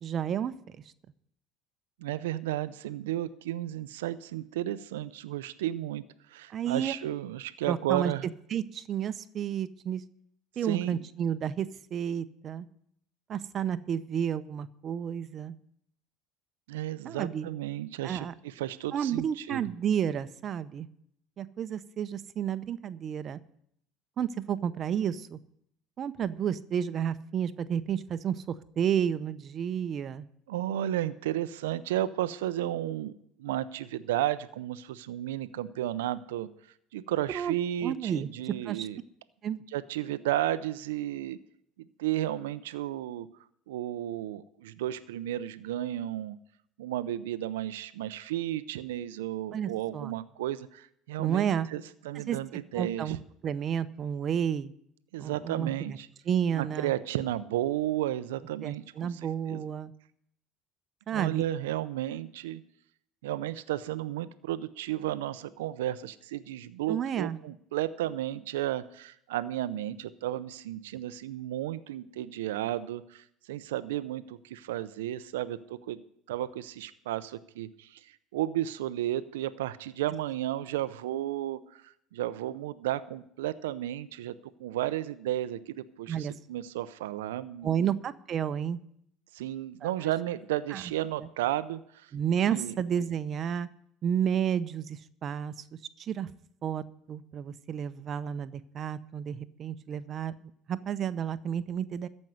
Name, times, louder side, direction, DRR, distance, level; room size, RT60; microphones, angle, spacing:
voice 1, 0.0-0.5 6.5-7.0 7.7-8.1 8.5-10.0 10.6-12.7 13.3-15.5 17.0-17.5 18.0-18.3 18.9-20.9 21.4-23.4 24.2-25.4 26.0-30.3 37.3-37.5 37.8-38.9 39.4-39.6 49.5-50.1 51.2-51.7 52.1-52.4 52.7-53.2 53.4-54.7 55.2-56.0 56.3-56.9 58.6-59.9 61.1-61.4 66.9-67.4 86.1-86.3 87.6-88.8 89.8-90.1 90.7-90.8 92.1-93.7 94.0-95.5 96.0-96.3 96.6-100.3 100.7-102.1, right 8 dB, 45° right, 14 dB, 0.7 m, -31 dB
voice 2, 2.0-8.3 10.6-11.0 16.7-19.7 30.5-33.1 33.4-36.5 36.9-39.0 39.7-41.4 42.0-43.3 43.7-46.4 46.8-53.2 55.1-56.1 56.5-59.1 59.5-59.6 61.1-62.6 63.2-76.0 76.3-87.9 89.3-92.1 92.5-92.7, right 13 dB, 85° right, 15 dB, 0.5 m, -33 dB
14.0 x 5.4 x 9.2 m, 0.70 s
hypercardioid pair, 80°, 0 cm